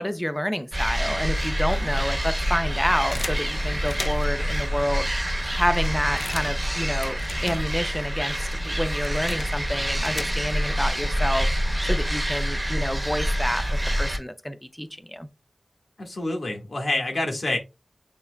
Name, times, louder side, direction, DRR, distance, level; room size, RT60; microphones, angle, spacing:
voice 1, 0.0-15.3, equal, 5° left, 0.6 m, -29 dB
sound 1, 0.7-14.2, equal, 20° right, 0.9 m, -26 dB
sound 2, 3.1-4.5 5.1-5.2 5.4-8.1 8.3-10.7, left 2 dB, 45° left, 0.4 m, -38 dB
voice 2, 16.0-17.6, left 2 dB, 75° left, 1.5 m, -27 dB
7.1 x 2.9 x 2.2 m
wide cardioid pair, 75°, 0 cm